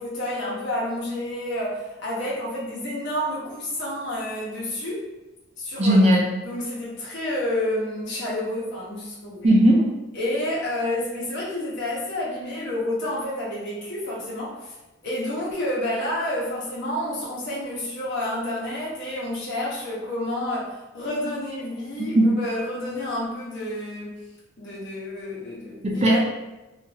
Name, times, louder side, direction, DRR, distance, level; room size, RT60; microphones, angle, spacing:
voice 1, 0.0-5.1 5.6-6.0 6.4-9.5 10.1-14.7 15.0-24.2 24.6-26.2, left 1 dB, 55° left, -6 dB, 0.8 m, -29 dB
voice 2, 5.8-6.2 9.4-9.9 22.0-22.3 25.8-26.2, right 1 dB, 30° right, -2 dB, 0.4 m, -17 dB
2.4 x 2.0 x 2.7 m, 1.0 s
head